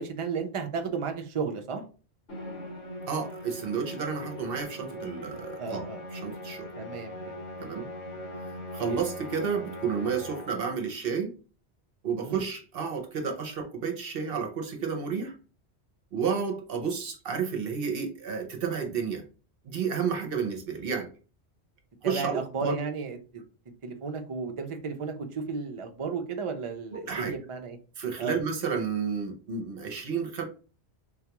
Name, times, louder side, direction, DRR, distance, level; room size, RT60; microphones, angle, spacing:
voice 1, 0.0-1.8 5.6-6.0 6.8-7.4 7.8-7.9 8.8-9.0 12.2-12.4 22.0-23.4 23.8-27.8 28.2-28.4, right 5 dB, 40° right, 5 dB, 0.5 m, -34 dB
Musical instrument, 2.3-10.8, left 1 dB, 80° left, 2.2 m, -40 dB
voice 2, 3.1-5.8 6.1-6.7 7.6-7.9 8.4-11.3 12.0-15.3 16.1-19.2 19.6-21.1 22.0-22.8 26.9-27.3 28.0-30.4, right 6 dB, 60° right, 4 dB, 0.9 m, -31 dB
3.9 x 2.3 x 2.9 m, 0.36 s
omnidirectional pair, 1.1 m